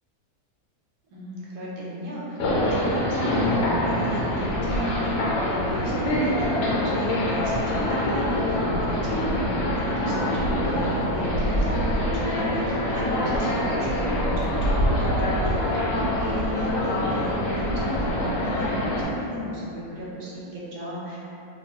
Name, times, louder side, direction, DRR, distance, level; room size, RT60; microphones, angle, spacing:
voice 1, 1.1-21.2, equal, 70° right, -6 dB, 1.2 m, -34 dB
sound 1, 2.4-19.0, left 1 dB, 75° left, 1.2 m, -25 dB
2.8 x 2.2 x 2.7 m, 2.8 s
omnidirectional pair, 1.8 m